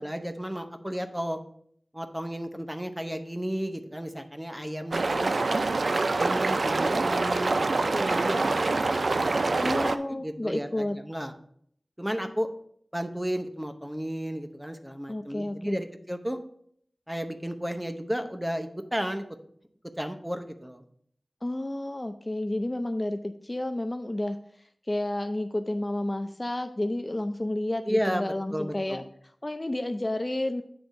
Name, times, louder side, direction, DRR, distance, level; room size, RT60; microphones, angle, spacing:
voice 1, 0.0-1.4 1.9-5.4 6.1-11.3 12.0-12.5 12.9-16.4 17.1-19.2 20.0-20.8 27.9-29.0, equal, 10° right, 6 dB, 0.8 m, -33 dB
sound 1, 4.9-10.0, right 3 dB, 75° right, 0.4 m, -25 dB
voice 2, 9.6-11.0 15.1-15.8 21.4-24.4 24.9-29.0 29.4-30.6, left 1 dB, 30° left, 8 dB, 0.4 m, -31 dB
8.9 x 3.4 x 5.2 m, 0.64 s
wide cardioid pair, 70°, 0 cm